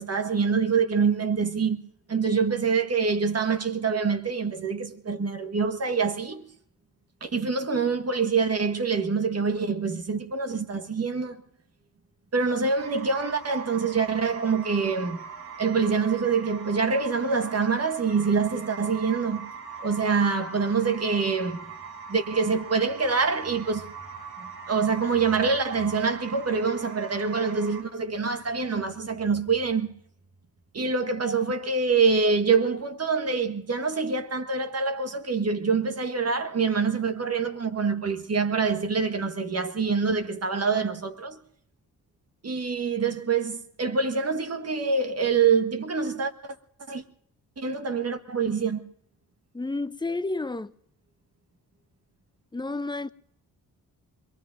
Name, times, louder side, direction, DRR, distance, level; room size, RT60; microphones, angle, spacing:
voice 1, 0.0-6.4 7.2-11.4 12.3-15.2 15.6-19.5 19.8-21.7 22.1-23.9 24.4-29.9 30.7-41.4 42.4-46.6 46.9-47.0 47.6-48.9, right 5 dB, 40° right, 1.5 m, -25 dB
sound 1, 12.8-27.8, right 6 dB, 75° right, 3.9 m, -41 dB
voice 2, 49.5-50.7 52.5-53.1, left 2 dB, 10° left, 0.7 m, -30 dB
26.0 x 21.5 x 2.6 m
cardioid pair, 60°, 38 cm